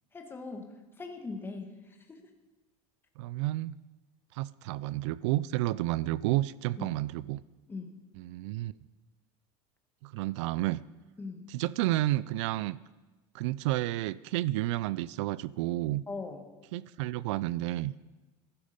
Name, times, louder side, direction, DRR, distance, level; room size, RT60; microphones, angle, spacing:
voice 1, 0.1-2.2 6.8-6.9 7.7-8.0 11.2-11.5 16.1-16.4, left 3 dB, 15° left, 4 dB, 1.8 m, -41 dB
voice 2, 3.2-3.8 4.3-7.4 8.2-8.7 10.0-10.8 11.5-12.8 13.3-16.0 16.7-17.9, right 16 dB, 80° right, 20 dB, 0.4 m, -31 dB
14.5 x 12.5 x 5.2 m, 1.2 s
supercardioid pair, 145°, 15 cm